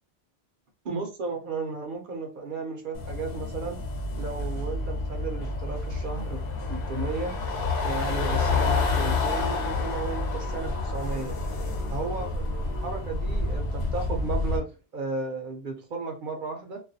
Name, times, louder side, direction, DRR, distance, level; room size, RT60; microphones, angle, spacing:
voice 1, 0.8-3.8 4.2-6.4 6.7-7.3 7.8-11.4 11.9-16.8, right 4 dB, 60° right, 0.7 m, -34 dB
sound 1, 2.9-14.6, left 3 dB, 85° left, 0.9 m, -29 dB
2.4 x 2.1 x 2.6 m
omnidirectional pair, 1.0 m